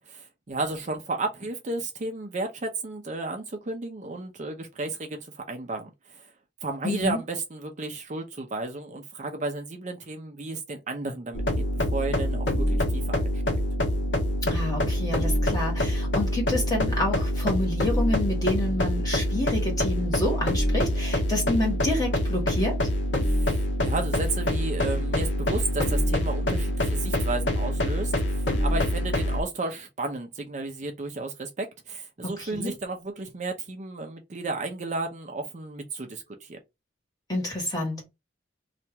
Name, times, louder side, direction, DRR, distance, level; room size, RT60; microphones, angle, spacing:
voice 1, 0.1-6.2 6.6-11.4 11.9-13.4 23.2-36.6, right 3 dB, 40° right, 0.6 m, -33 dB
voice 2, 6.8-7.2 14.4-22.8 32.2-32.7 37.3-38.1, left 1 dB, 20° left, 1.5 m, -28 dB
sound 1, 11.3-29.4, left 1 dB, 85° left, 0.8 m, -25 dB
2.8 x 2.5 x 3.2 m
head